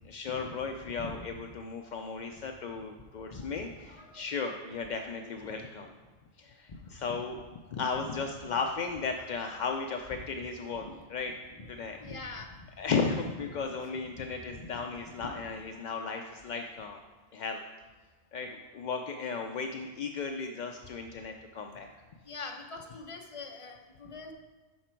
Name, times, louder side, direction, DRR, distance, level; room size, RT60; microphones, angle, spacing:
voice 1, 0.0-5.9 6.4-7.4 7.7-11.3 11.7-12.0 12.8-17.0 17.3-17.6 18.3-21.9, left 5 dB, 60° left, 4 dB, 0.5 m, -35 dB
voice 2, 12.0-12.7 14.1-14.2 14.5-14.6 22.2-24.3, left 3 dB, 30° left, 2 dB, 0.8 m, -43 dB
8.6 x 5.9 x 4.5 m, 1.3 s
omnidirectional pair, 1.2 m